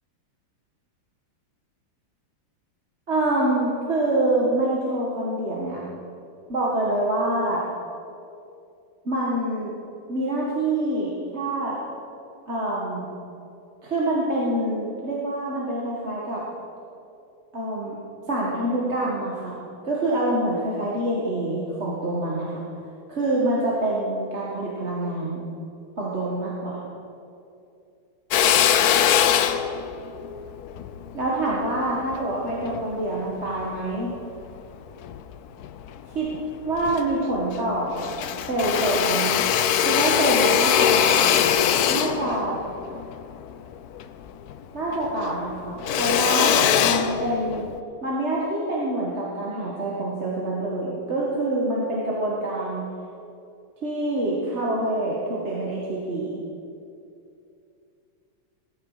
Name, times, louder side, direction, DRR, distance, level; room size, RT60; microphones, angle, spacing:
voice 1, 3.1-5.8 6.5-7.6 9.1-9.7 10.1-11.8 12.5-13.1 13.8-16.4 17.5-18.0 18.3-19.5 19.8-22.6 23.1-25.4 26.0-26.8 31.1-34.2 36.1-36.3 36.7-38.1 38.5-39.5 39.9-41.3 41.9-42.6 44.7-47.7 48.0-52.8 53.8-56.4, right 1 dB, 30° right, -5 dB, 1.9 m, -26 dB
Drill, 28.3-32.8 33.4-34.6 35.0-36.0 36.3-36.4 36.7-37.7 37.9-44.6 44.9-47.8, left 9 dB, 80° left, 0.8 m, -22 dB
18.5 x 13.5 x 5.0 m, 2.6 s
omnidirectional pair, 2.4 m